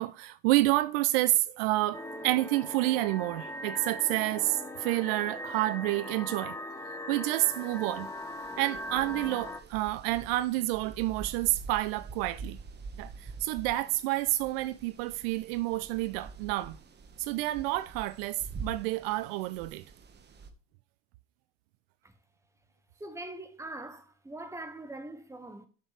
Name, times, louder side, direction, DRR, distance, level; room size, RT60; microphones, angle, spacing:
voice 1, 0.0-6.5 7.1-8.1 8.6-12.6 13.0-16.8 17.2-19.8, right 17 dB, 65° right, 0.5 m, -29 dB
sound 1, 1.9-9.6, left 1 dB, 10° left, 1.1 m, -40 dB
sound 2, 7.4-20.5, right 4 dB, 35° right, 1.4 m, -46 dB
voice 2, 23.0-25.7, right 2 dB, 10° right, 1.4 m, -42 dB
11.5 x 6.5 x 3.3 m
hypercardioid pair, 70°, 31 cm